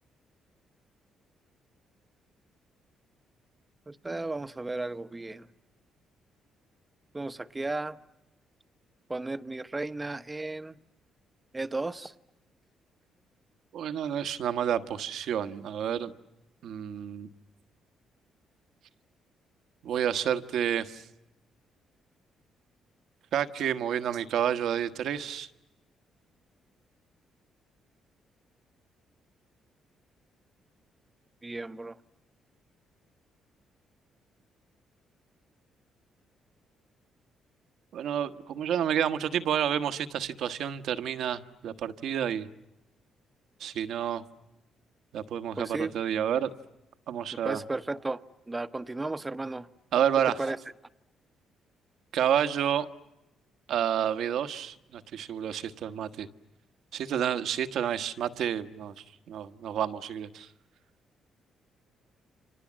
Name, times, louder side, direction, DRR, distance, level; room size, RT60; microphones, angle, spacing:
voice 1, 3.9-5.5 7.1-8.0 9.1-10.8 11.5-12.1 31.4-32.0 45.6-45.9 47.4-48.2 48.5-49.7 50.3-50.6, right 2 dB, 20° right, 1.1 m, -34 dB
voice 2, 13.7-16.1 16.6-17.3 19.8-21.0 23.3-25.5 37.9-42.5 43.6-44.2 45.1-46.5 47.1-47.6 49.9-50.4 52.1-52.9 53.7-56.3 56.9-58.9 59.3-60.5, right 9 dB, 75° right, 1.3 m, -29 dB
30.0 x 26.0 x 7.5 m
cardioid pair, 90°, 0 cm